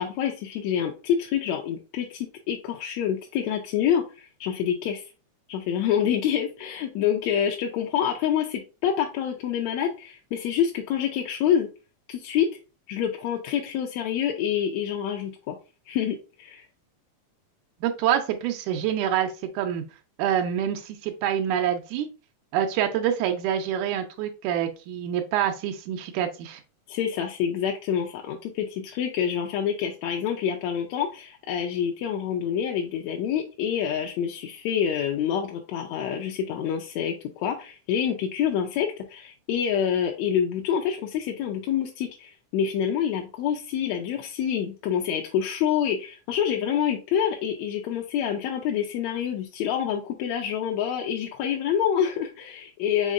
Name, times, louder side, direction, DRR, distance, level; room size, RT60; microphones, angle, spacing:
voice 1, 0.0-5.1 5.5-11.7 12.1-12.5 12.9-15.6 15.9-16.6 26.9-53.1, left 9 dB, 80° left, 2 dB, 1.6 m, -27 dB
voice 2, 17.8-19.8 20.2-22.1 22.5-26.6, right 9 dB, 90° right, 5 dB, 2.0 m, -26 dB
5.2 x 3.6 x 2.4 m, 0.32 s
omnidirectional pair, 3.4 m